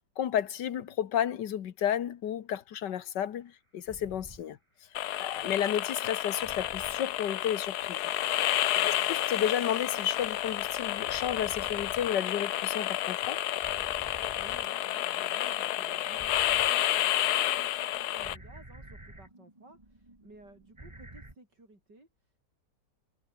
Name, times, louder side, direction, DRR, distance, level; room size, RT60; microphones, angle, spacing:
voice 1, 0.2-4.6 5.2-8.1 8.8-13.4, left 10 dB, 90° left, 1.8 m, -32 dB
sound 1, 3.9-4.5 6.4-7.0 8.5-10.0 11.0-13.1 13.6-21.3, right 1 dB, 15° right, 2.7 m, -52 dB
sound 2, 4.9-18.3, left 13 dB, 70° left, 1.2 m, -30 dB
voice 2, 5.0-5.5 8.7-9.1 14.4-22.4, right 2 dB, 90° right, 8.6 m, -55 dB
sound 3, 7.5-15.5, left 2 dB, 25° left, 2.7 m, -56 dB
omnidirectional pair, 1.8 m